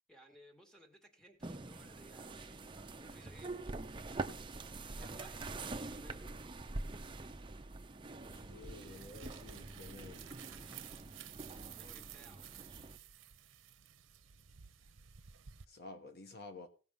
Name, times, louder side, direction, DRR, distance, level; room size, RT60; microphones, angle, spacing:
voice 1, 0.1-3.7 4.9-6.3 11.5-12.5, equal, 5° left, 2.2 m, -60 dB
sound 1, 1.4-13.0, right 2 dB, 25° right, 0.7 m, -45 dB
voice 2, 8.2-10.3 11.3-11.6 15.7-16.7, left 2 dB, 55° left, 1.2 m, -52 dB
sound 2, 8.2-15.6, right 10 dB, 85° right, 0.7 m, -54 dB
17.5 x 6.0 x 5.4 m
head